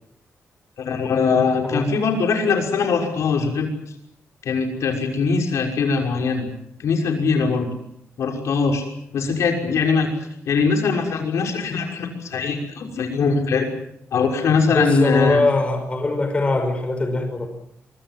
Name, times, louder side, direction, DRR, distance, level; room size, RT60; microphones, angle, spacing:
voice 1, 0.8-3.7 4.4-6.5 6.8-7.7 8.2-8.8 9.1-10.1 10.5-13.7 14.1-15.4, left 5 dB, 80° left, 2 dB, 6.1 m, -21 dB
voice 2, 14.6-17.5, left 2 dB, 25° left, 5 dB, 5.7 m, -22 dB
25.5 x 24.0 x 7.7 m, 0.73 s
wide cardioid pair, 150°, 5 cm